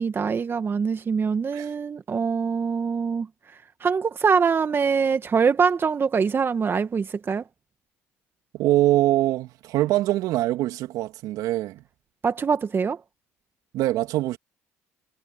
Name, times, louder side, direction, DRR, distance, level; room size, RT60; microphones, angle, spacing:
voice 1, 0.0-7.4 12.2-13.0, right 6 dB, 35° right, 1.5 m, -24 dB
voice 2, 8.5-11.8 13.7-14.4, right 15 dB, 65° right, 3.0 m, -23 dB
hypercardioid pair, 70°, 7 cm